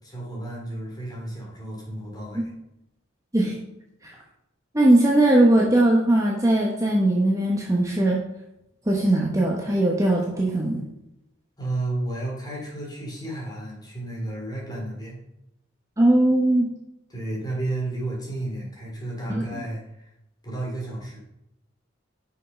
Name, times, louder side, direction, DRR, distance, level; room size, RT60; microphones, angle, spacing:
voice 1, 0.0-2.5 11.6-15.2 17.1-20.1 20.4-21.2, right 2 dB, 20° left, -3 dB, 2.9 m, -32 dB
voice 2, 4.7-8.2 8.9-10.8 16.0-16.7 19.3-19.6, right 1 dB, 15° right, -2 dB, 1.0 m, -20 dB
6.2 x 5.7 x 5.4 m, 0.85 s
head